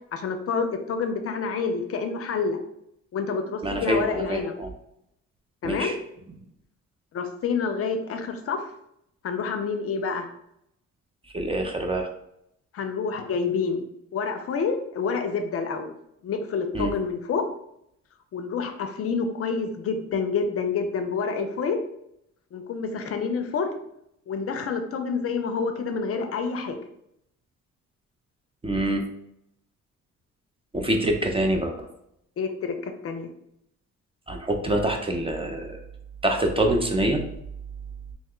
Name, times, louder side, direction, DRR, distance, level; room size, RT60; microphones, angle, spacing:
voice 1, 0.1-2.6 3.1-4.5 5.6-6.0 7.1-8.6 9.2-10.3 12.7-13.8 14.1-15.9 16.2-17.4 18.3-21.8 22.5-23.7 24.3-26.8 32.4-33.3, left 5 dB, 50° left, 7 dB, 0.5 m, -28 dB
voice 2, 3.6-4.7 5.6-5.9 11.3-12.1 16.7-16.9 28.6-29.0 30.7-31.9 34.3-35.8 36.2-37.2, right 1 dB, 20° right, 3 dB, 0.4 m, -25 dB
2.9 x 2.1 x 3.6 m, 0.76 s
cardioid pair, 90°, 30 cm